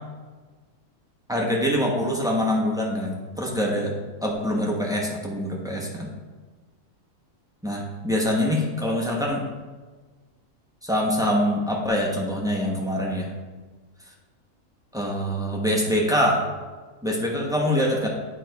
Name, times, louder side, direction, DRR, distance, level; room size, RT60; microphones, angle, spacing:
voice 1, 1.3-3.9 4.2-6.1 7.6-9.4 10.8-13.3 14.9-16.4 17.0-18.1, equal, 5° right, -2 dB, 0.8 m, -24 dB
8.9 x 3.3 x 4.6 m, 1.3 s
omnidirectional pair, 1.6 m